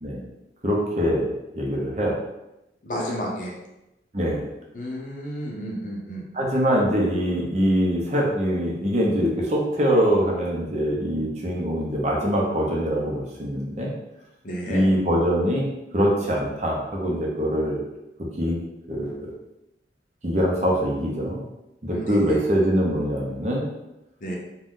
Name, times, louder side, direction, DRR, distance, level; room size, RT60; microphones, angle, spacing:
voice 1, 0.6-2.2 4.1-4.5 6.3-13.9 14.7-15.7 15.9-17.8 18.2-18.6 18.9-19.3 20.2-21.4 21.8-23.7, equal, 40° right, -2 dB, 0.7 m, -23 dB
voice 2, 2.8-3.6 4.7-6.2 14.4-14.9 21.9-22.4 24.2-24.4, equal, 45° left, -2 dB, 0.7 m, -31 dB
2.6 x 2.3 x 3.6 m, 0.92 s
head